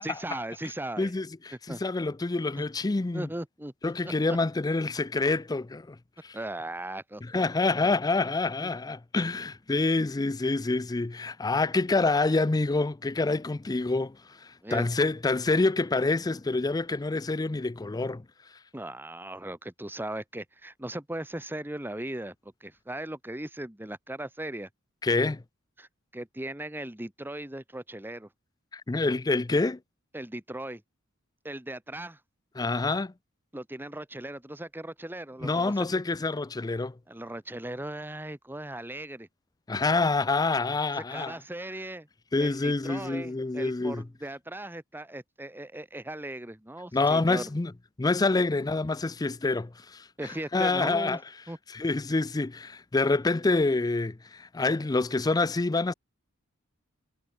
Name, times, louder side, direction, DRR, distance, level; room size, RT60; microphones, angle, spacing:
voice 1, 0.0-1.1 1.7-1.8 3.1-3.7 4.0-4.4 6.3-7.2 8.6-8.7 14.6-14.8 18.7-22.3 22.6-24.7 25.8-28.3 30.1-30.8 31.4-32.2 33.5-36.0 37.1-39.3 40.9-42.1 42.4-47.5 50.2-51.2 51.5-51.6, right 1 dB, 10° right, 1.3 m, -38 dB
voice 2, 1.0-3.3 3.8-6.0 6.2-6.4 7.3-14.2 14.7-18.2 25.0-25.4 28.7-29.8 32.6-33.1 35.4-36.9 39.7-41.4 42.3-44.0 46.9-47.7 48.0-50.1 50.5-51.2 51.7-55.9, left 3 dB, 20° left, 0.4 m, -27 dB
head